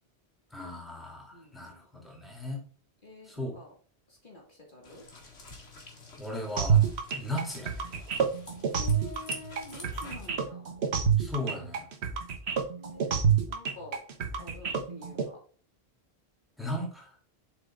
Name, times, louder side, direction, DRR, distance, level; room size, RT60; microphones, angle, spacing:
voice 1, 0.5-2.6 3.3-3.5 6.2-6.9 7.1-7.7 11.2-11.9 16.6-17.2, left 1 dB, ahead, -1 dB, 2.8 m, -36 dB
voice 2, 1.3-2.1 3.0-3.8 4.1-5.1 7.1-7.3 8.7-10.7 12.7-14.0 14.4-15.4, left 3 dB, 50° left, -1 dB, 2.1 m, -48 dB
sound 1, 4.8-10.3, left 3 dB, 85° left, 2.2 m, -49 dB
sound 2, 6.6-15.3, right 7 dB, 80° right, 1.2 m, -27 dB
7.8 x 6.4 x 2.5 m, 0.41 s
omnidirectional pair, 1.1 m